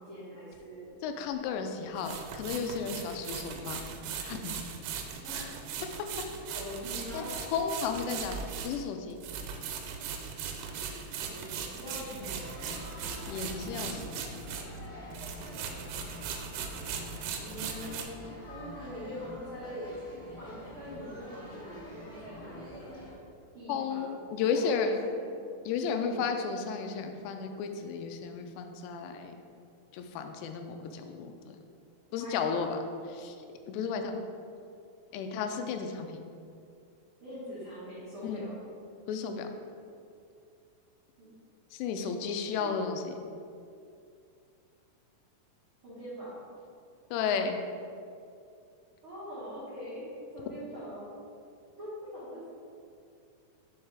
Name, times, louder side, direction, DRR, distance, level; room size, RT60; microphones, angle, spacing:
voice 1, 0.0-0.9 5.2-5.6 6.4-7.3 10.8-12.4 15.5-15.6 15.9-16.1 17.4-18.2 18.5-19.9 20.4-22.9 23.5-24.8 25.0-25.2 26.0-26.2 32.1-32.7 35.1-35.2 37.2-38.5 41.2-41.3 42.6-42.8 45.8-46.4 49.0-50.1 50.3-51.1 51.8-52.4, equal, 60° right, -12 dB, 1.3 m, -43 dB
sound 1, 0.5-0.6 2.0-14.9 15.1-18.0, right 6 dB, 80° right, 2.6 m, -39 dB
voice 2, 1.0-3.8 4.1-4.5 7.1-7.2 7.5-9.2 12.1-12.3 13.3-14.2 23.7-25.0 25.7-29.3 29.9-31.6 32.1-32.8 33.1-33.4 33.7-34.1 35.1-36.2 38.2-38.5 39.1-39.5 41.7-43.2 47.1-47.6, left 6 dB, 85° left, 6 dB, 2.7 m, -33 dB
sound 2, 12.1-23.1, equal, 55° left, 1.1 m, -45 dB
6.8 x 6.3 x 3.4 m, 2.5 s
omnidirectional pair, 4.9 m